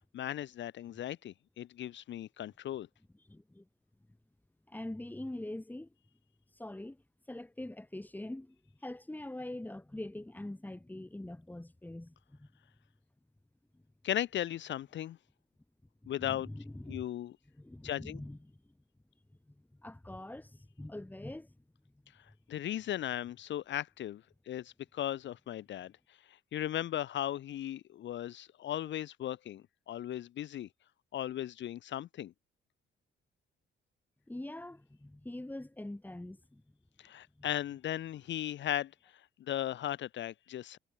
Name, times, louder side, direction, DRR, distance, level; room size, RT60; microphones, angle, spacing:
voice 1, 0.1-2.9 14.0-15.2 16.1-16.5 16.9-17.3 17.8-18.2 22.5-25.9 26.3-30.7 31.1-32.3 37.0-38.9 39.4-40.8, left 12 dB, 70° left, 1.0 m, -37 dB
voice 2, 3.3-3.6 4.7-5.9 6.6-7.0 7.3-8.6 8.8-12.5 16.0-17.1 17.6-18.6 19.5-19.6 19.8-21.5 34.3-36.6 37.4-37.5, left 1 dB, 10° left, 3.0 m, -43 dB
cardioid pair, 90°, 20 cm